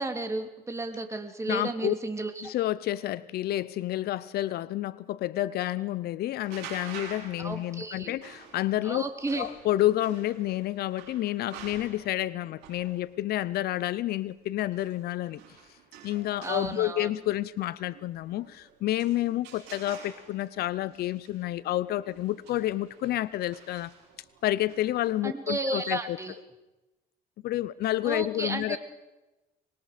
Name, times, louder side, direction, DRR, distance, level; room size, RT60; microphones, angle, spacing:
voice 1, 0.0-2.5 7.4-8.1 8.8-9.5 16.4-17.1 25.2-26.3 28.0-28.8, right 2 dB, 15° right, 6 dB, 2.3 m, -33 dB
voice 2, 1.5-1.9 2.4-9.1 9.3-15.4 16.0-23.9 24.4-26.2 27.4-28.8, left 14 dB, 70° left, 18 dB, 0.7 m, -29 dB
sound 1, 6.4-25.1, right 6 dB, 90° right, 6.5 m, -49 dB
25.0 x 21.5 x 5.1 m, 1.0 s
cardioid pair, 110°, 17 cm